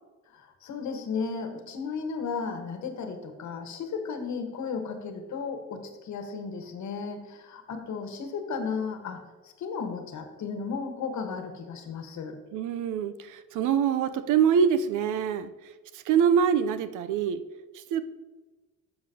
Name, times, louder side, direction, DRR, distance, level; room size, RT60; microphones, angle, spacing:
voice 1, 0.3-12.4, left 5 dB, 70° left, 6 dB, 1.3 m, -34 dB
voice 2, 12.5-15.5 15.9-17.4 17.7-18.0, right 7 dB, 85° right, 12 dB, 0.6 m, -25 dB
11.5 x 6.8 x 2.8 m, 1.3 s
cardioid pair, 90°, 30 cm